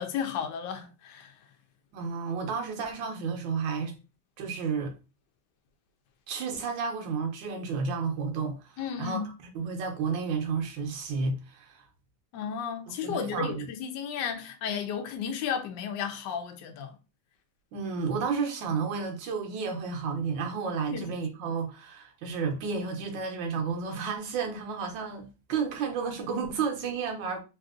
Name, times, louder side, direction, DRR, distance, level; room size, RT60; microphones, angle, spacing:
voice 1, 0.0-1.3 8.8-9.3 12.3-17.0 20.9-21.2, left 7 dB, 75° left, 1.2 m, -33 dB
voice 2, 1.9-3.9 4.4-4.9 6.3-9.2 9.5-11.9 13.0-13.7 17.7-27.4, right 5 dB, 75° right, 1.4 m, -31 dB
3.4 x 2.6 x 2.4 m
omnidirectional pair, 2.1 m